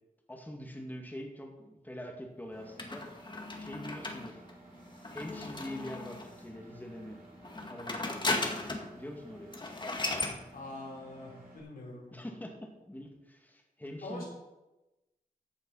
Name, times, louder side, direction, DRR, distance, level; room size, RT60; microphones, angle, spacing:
voice 1, 0.3-3.0 3.6-4.4 5.1-7.2 7.6-8.2 8.9-9.5 12.1-14.2, left 1 dB, 10° left, 1 dB, 2.2 m, -44 dB
Engine, 2.5-11.6, right 2 dB, 75° right, 3.9 m, -55 dB
sound 1, 2.8-6.4 7.4-8.9 9.2-9.3 9.5-10.4, left 2 dB, 30° left, 1.9 m, -36 dB
voice 2, 10.5-12.2 14.0-14.3, left 2 dB, 85° left, -3 dB, 5.1 m, -44 dB
14.5 x 8.0 x 5.7 m, 1.0 s
wide cardioid pair, 95°, 15 cm